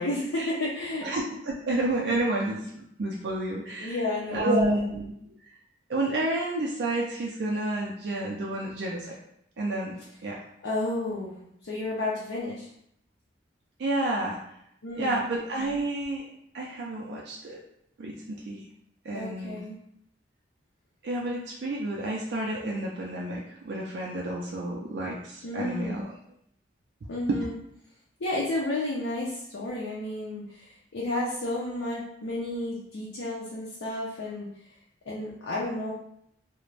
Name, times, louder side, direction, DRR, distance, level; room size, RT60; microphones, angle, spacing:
voice 1, 0.0-1.1 3.8-4.8 10.6-12.7 14.8-15.2 19.1-19.8 25.4-26.1 27.1-27.5 28.2-34.5 35.1-35.9, left 2 dB, 85° left, -5 dB, 0.5 m, -32 dB
voice 2, 1.0-5.1 5.9-9.2 9.6-10.4 13.8-14.4 14.9-16.3 16.5-17.6 18.0-18.6 19.1-19.6 21.0-26.0 27.3-27.4, right 1 dB, 65° right, -3 dB, 0.4 m, -30 dB
2.4 x 2.1 x 3.1 m, 0.72 s
head